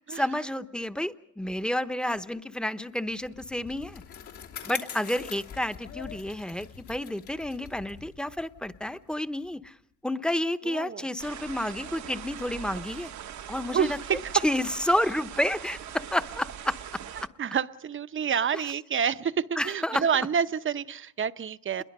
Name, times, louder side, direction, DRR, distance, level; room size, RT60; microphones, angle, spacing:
voice 1, 0.0-4.0 4.6-9.7 10.0-13.1 13.5-16.8 19.6-20.0, left 1 dB, 5° left, 11 dB, 0.9 m, -30 dB
Bicycle, 2.9-9.7, left 7 dB, 75° left, 3.0 m, -44 dB
voice 2, 10.6-11.1 13.7-14.3 17.4-21.8, right 7 dB, 40° right, 13 dB, 0.8 m, -28 dB
sound 1, 11.2-17.3, right 9 dB, 65° right, 1.1 m, -41 dB
28.0 x 22.0 x 5.4 m, 0.77 s
cardioid pair, 90°, 30 cm